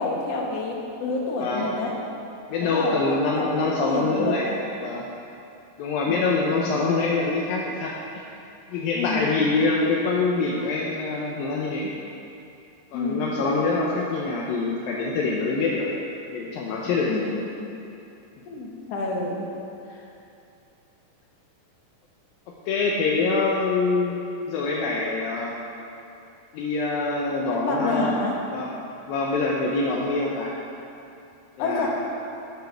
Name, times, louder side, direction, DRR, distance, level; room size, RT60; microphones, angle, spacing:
voice 1, 0.0-1.9 2.6-4.6 6.0-6.4 9.0-9.5 12.9-13.4 17.1-17.4 18.5-19.5 19.9-20.0 27.5-28.4 31.6-31.9, left 3 dB, 60° left, -1 dB, 1.8 m, -29 dB
voice 2, 2.5-4.5 4.8-5.0 5.8-8.2 8.7-11.9 12.9-15.9 16.3-17.3 22.7-24.2 24.5-25.5 26.5-28.2 28.5-28.7 29.1-30.5 31.6-31.9, left 3 dB, 75° left, -3 dB, 2.5 m, -25 dB
15.5 x 7.3 x 4.7 m, 2.7 s
omnidirectional pair, 4.5 m